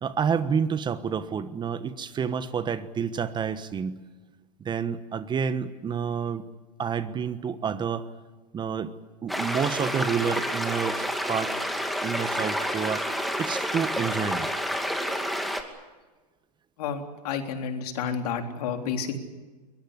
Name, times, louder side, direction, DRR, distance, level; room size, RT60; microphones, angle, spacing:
voice 1, 0.0-4.0 4.6-6.4 6.8-8.1 8.5-8.9 9.2-11.5 12.0-13.1 13.4-14.5, right 7 dB, 20° right, 13 dB, 1.2 m, -29 dB
sound 1, 9.3-15.6, equal, ahead, 2.6 m, -29 dB
voice 2, 16.8-19.2, left 6 dB, 65° left, 5 dB, 3.7 m, -30 dB
22.5 x 21.0 x 9.9 m, 1.3 s
hypercardioid pair, 115°, 21 cm